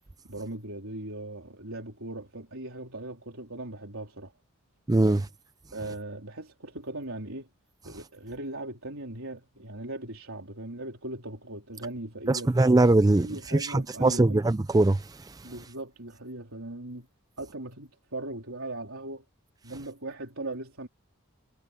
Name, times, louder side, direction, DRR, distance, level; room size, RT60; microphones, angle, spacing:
voice 1, 0.3-4.3 5.0-5.3 5.7-7.5 7.8-12.6 13.1-14.4 15.4-17.1 17.4-19.2 19.6-20.9, right 2 dB, 70° right, 4.0 m, -39 dB
voice 2, 4.9-5.2 12.3-13.3 13.5-15.0, right 2 dB, 15° right, 0.4 m, -21 dB
head